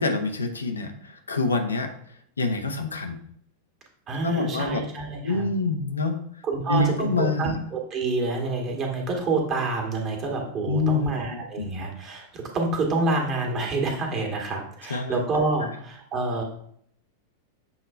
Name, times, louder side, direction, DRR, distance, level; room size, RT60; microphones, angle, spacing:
voice 1, 0.0-1.9 2.4-3.2 4.2-4.8 5.2-6.2 6.7-7.6 10.7-11.7 14.9-15.2, left 3 dB, 75° left, 5 dB, 0.7 m, -26 dB
voice 2, 4.1-5.5 6.4-16.4, right 3 dB, 30° right, 1 dB, 1.7 m, -27 dB
7.1 x 3.2 x 4.4 m, 0.66 s
figure-of-eight pair, 90°, 0 cm